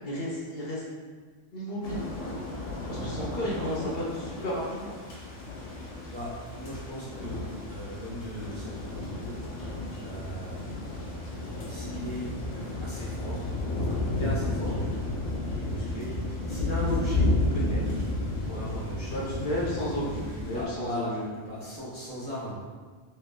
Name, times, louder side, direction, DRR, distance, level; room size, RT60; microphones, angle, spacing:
voice 1, 0.0-0.8 1.5-2.1 2.9-4.9 19.1-21.3, left 1 dB, 55° left, -5 dB, 0.9 m, -32 dB
sound 1, 1.8-20.6, left 2 dB, 75° left, 1.2 m, -32 dB
voice 2, 5.6-9.4 10.0-11.3 11.7-12.4 12.8-13.5 13.7-15.1 15.4-18.0 18.3-19.3 19.9-20.0 20.5-22.6, equal, 25° right, -9 dB, 0.8 m, -38 dB
3.1 x 3.0 x 3.5 m, 1.5 s
omnidirectional pair, 1.3 m